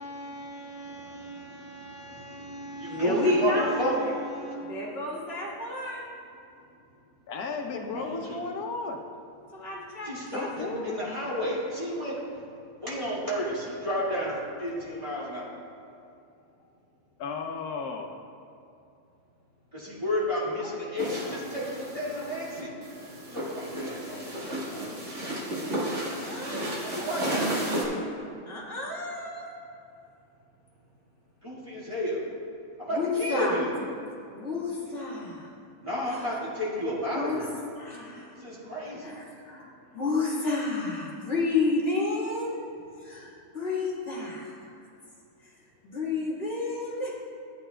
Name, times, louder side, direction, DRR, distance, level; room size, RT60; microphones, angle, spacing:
voice 1, 0.0-4.7 7.9-8.4 10.0-12.2 12.8-15.5 19.7-22.7 23.3-25.1 26.9-27.5 31.4-32.2 32.8-33.7 35.8-37.5 38.3-39.2, equal, 20° right, -8 dB, 1.9 m, -32 dB
voice 2, 2.9-3.8 4.0-4.1 4.7-6.1 9.5-10.5 26.0-26.9 28.5-29.5 32.9-33.6 34.3-35.5 36.1-36.2 37.1-37.4 37.8-38.4 39.0-42.6 43.0-44.7 45.4-45.5 45.8-47.2, left 3 dB, 40° left, -6 dB, 1.8 m, -31 dB
voice 3, 7.3-9.0 10.3-10.9 17.2-18.1 20.6-20.7 21.2-21.4, left 4 dB, 80° left, 3 dB, 1.2 m, -34 dB
sound 1, 21.0-27.8, right 1 dB, 50° right, 1.8 m, -33 dB
13.0 x 8.9 x 2.2 m, 2.6 s
omnidirectional pair, 1.6 m